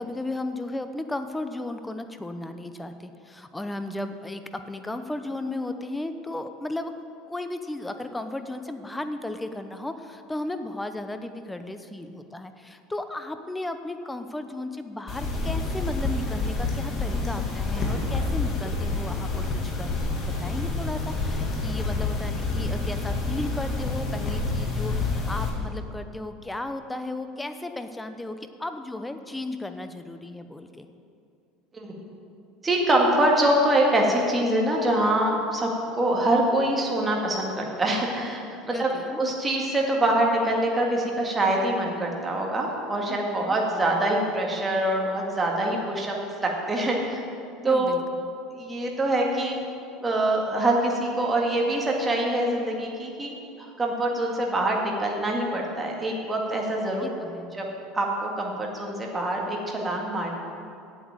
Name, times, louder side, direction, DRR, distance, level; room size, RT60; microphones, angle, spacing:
voice 1, 0.0-6.9 7.3-30.9 38.7-39.2 43.1-43.6 47.6-48.0 57.0-57.5, left 2 dB, 10° left, 8 dB, 0.7 m, -35 dB
sound 1, 15.1-25.5, left 3 dB, 35° left, 2.3 m, -28 dB
voice 2, 32.6-38.9 39.2-46.1 46.4-47.2 47.6-47.9 48.6-49.6 50.0-53.3 53.6-57.1 57.5-57.7 57.9-60.3, right 1 dB, 15° right, -1 dB, 2.1 m, -24 dB
8.3 x 8.2 x 8.9 m, 2.5 s
supercardioid pair, 125°, 0 cm